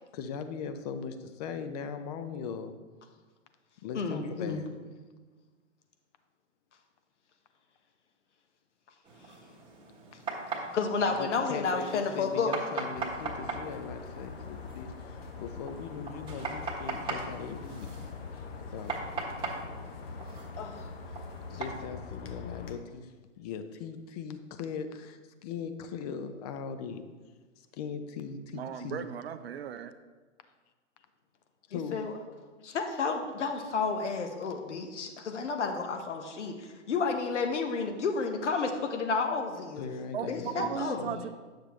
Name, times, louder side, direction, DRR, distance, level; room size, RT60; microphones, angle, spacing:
voice 1, 0.1-2.8 3.8-5.0 11.1-17.9 18.3-18.4 18.7-18.9 21.5-27.0 27.7-29.1 31.7-32.0 39.8-41.2, left 6 dB, 30° left, 9 dB, 0.6 m, -39 dB
voice 2, 3.9-4.6 10.7-12.5 20.6-20.9 31.7-32.1 32.6-39.8 40.3-41.0, left 4 dB, 65° left, 5 dB, 1.2 m, -31 dB
sound 1, 9.0-21.8, right 3 dB, 15° right, 1.4 m, -40 dB
sound 2, 12.9-22.8, left 5 dB, 50° left, 0.9 m, -43 dB
voice 3, 28.5-29.9 40.1-41.3, right 9 dB, 55° right, 10 dB, 0.6 m, -36 dB
9.5 x 6.7 x 3.1 m, 1.4 s
figure-of-eight pair, 120°, 38 cm